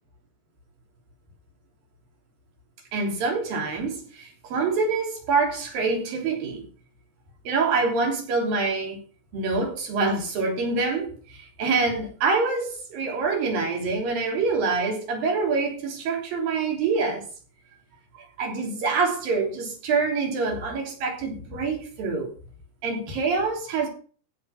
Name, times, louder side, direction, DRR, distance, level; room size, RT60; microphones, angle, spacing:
voice 1, 2.9-6.6 7.4-9.0 9.3-17.2 18.4-22.3 22.8-23.9, right 4 dB, 55° right, 4.9 m, -26 dB
16.0 x 6.2 x 5.9 m
omnidirectional pair, 5.1 m